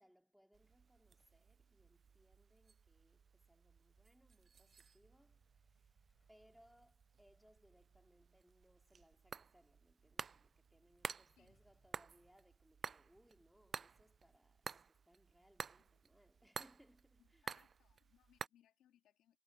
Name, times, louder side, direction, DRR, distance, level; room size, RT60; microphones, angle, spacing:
voice 1, 0.0-17.5, equal, ahead, 2.6 m, -71 dB
sound 1, 0.5-18.5, right 6 dB, 45° right, 0.4 m, -53 dB
sound 2, 3.7-15.4, left 3 dB, 30° left, 4.6 m, -85 dB
voice 2, 17.2-19.4, left 11 dB, 80° left, 2.7 m, -73 dB
cardioid pair, 90°, 0 cm